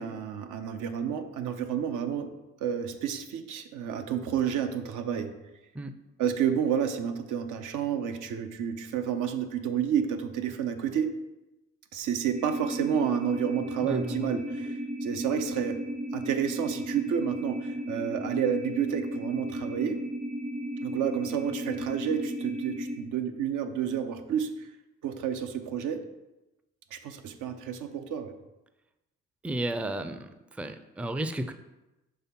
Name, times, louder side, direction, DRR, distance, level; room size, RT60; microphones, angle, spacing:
voice 1, 0.0-5.3 6.2-11.1 11.9-15.8 16.1-20.0 20.8-24.7 25.0-26.0 26.9-28.3, right 8 dB, 85° right, 7 dB, 0.7 m, -30 dB
sound 1, 12.3-23.0, equal, 55° right, 1.3 m, -35 dB
voice 2, 13.8-14.3 29.4-30.3 30.6-31.5, right 1 dB, 5° right, 10 dB, 0.3 m, -33 dB
5.6 x 3.5 x 5.8 m, 0.99 s
cardioid pair, 90°, 30 cm